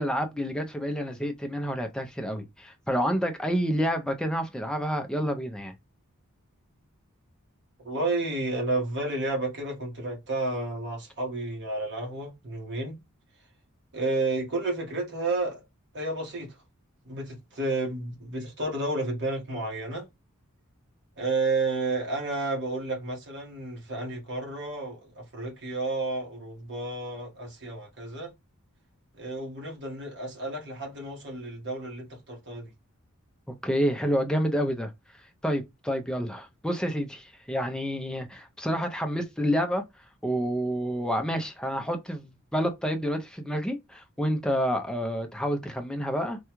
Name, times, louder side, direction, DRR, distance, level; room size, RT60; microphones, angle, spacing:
voice 1, 0.0-5.7 33.6-34.9 35.4-39.8 40.2-46.4, equal, 5° left, 0.4 m, -29 dB
voice 2, 7.8-13.0 13.9-15.6 15.9-16.5 17.0-20.0 21.2-28.3 29.2-32.7, right 2 dB, 50° right, 1.4 m, -31 dB
3.4 x 2.2 x 3.0 m
head